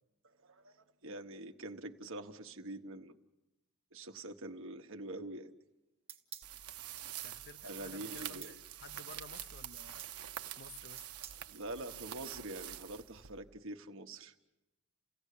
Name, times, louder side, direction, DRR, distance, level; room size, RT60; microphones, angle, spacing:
voice 1, 0.4-3.2 3.9-5.5 7.6-8.6 11.5-14.3, right 1 dB, 60° right, 1.3 m, -45 dB
sound 1, 6.1-6.5 7.0-7.3 8.2-8.6 9.8-10.2 11.0-11.4, right 8 dB, 25° right, 1.5 m, -50 dB
sound 2, 6.4-13.6, right 11 dB, 90° right, 0.8 m, -46 dB
voice 2, 7.2-10.1 10.6-11.1, left 4 dB, 50° left, 0.8 m, -54 dB
29.5 x 17.0 x 8.4 m
head